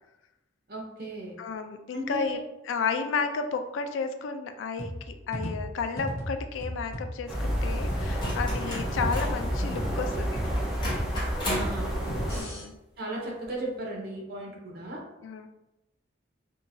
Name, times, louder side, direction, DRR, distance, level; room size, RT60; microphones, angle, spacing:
voice 1, 0.7-1.3 1.9-2.4 11.5-11.9 13.0-15.0, right 1 dB, 55° right, -1 dB, 0.7 m, -36 dB
voice 2, 1.4-2.4 2.6-10.4 12.3-12.8 15.2-15.5, left 5 dB, 85° left, 7 dB, 0.3 m, -32 dB
sound 1, 4.8-12.6, equal, 55° left, 0.9 m, -35 dB
sound 2, 7.3-12.4, equal, 5° right, 0.4 m, -30 dB
sound 3, 8.2-9.4 10.4-11.8 13.4-13.5, equal, 25° left, 0.9 m, -34 dB
2.8 x 2.3 x 2.6 m, 0.93 s
head